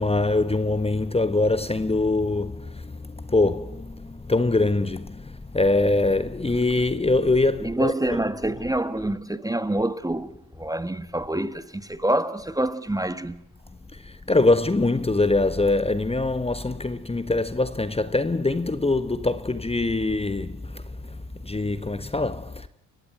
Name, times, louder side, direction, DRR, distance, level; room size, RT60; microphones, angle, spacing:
voice 1, 0.0-8.2 13.9-21.2 21.4-22.7, left 2 dB, 15° left, 1.3 m, -23 dB
voice 2, 7.6-13.4, right 1 dB, 10° right, 1.4 m, -27 dB
30.0 x 16.0 x 9.2 m
supercardioid pair, 65°, 38 cm